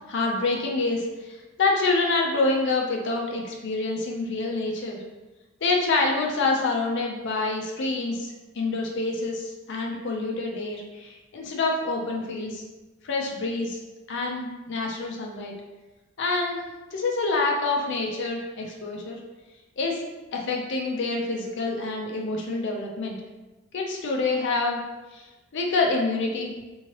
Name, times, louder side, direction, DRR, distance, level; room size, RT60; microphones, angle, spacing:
voice 1, 0.1-5.0 5.6-12.6 13.0-13.8 14.1-15.5 16.2-16.6 16.9-19.2 19.8-20.0 20.3-23.2 23.7-24.8 25.1-25.3 25.5-26.5, left 3 dB, 60° left, 0 dB, 0.5 m, -27 dB
3.5 x 3.1 x 2.9 m, 1.1 s
head